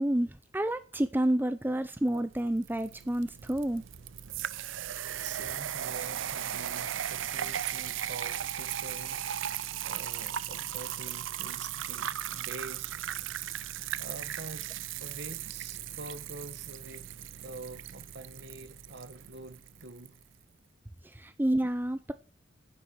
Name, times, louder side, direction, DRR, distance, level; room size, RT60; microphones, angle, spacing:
voice 1, 0.0-3.8 21.0-22.1, right 1 dB, 10° right, 0.6 m, -29 dB
sound 1, 2.1-20.1, right 10 dB, 80° right, 0.6 m, -37 dB
voice 2, 5.2-13.1 14.0-14.7 15.0-17.1 17.4-20.2, right 2 dB, 60° right, 1.4 m, -46 dB
10.0 x 7.3 x 8.9 m
head